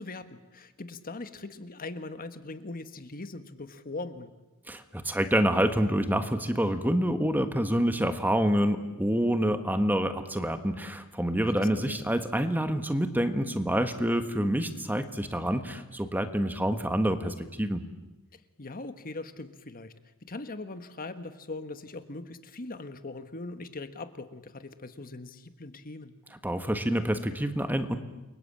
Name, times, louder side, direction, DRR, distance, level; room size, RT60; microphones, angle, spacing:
voice 1, 0.0-4.3 11.8-12.0 18.3-19.9 20.2-26.1, left 2 dB, 40° left, 10 dB, 1.5 m, -40 dB
voice 2, 4.7-17.8 26.4-28.0, equal, 10° right, 8 dB, 1.5 m, -27 dB
29.0 x 23.0 x 8.8 m, 1.0 s
head